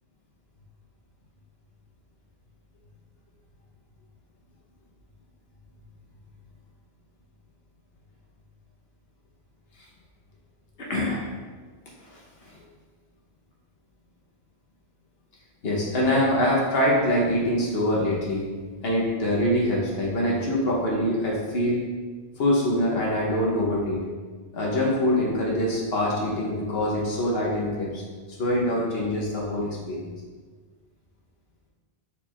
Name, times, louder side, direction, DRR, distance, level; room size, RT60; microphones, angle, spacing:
voice 1, 10.8-11.3 12.1-12.5 15.6-18.5 18.8-21.8 22.4-24.0 24.5-28.0 28.3-30.1, left 1 dB, 70° left, -3 dB, 1.0 m, -24 dB
4.4 x 2.3 x 4.3 m, 1.5 s
omnidirectional pair, 1.1 m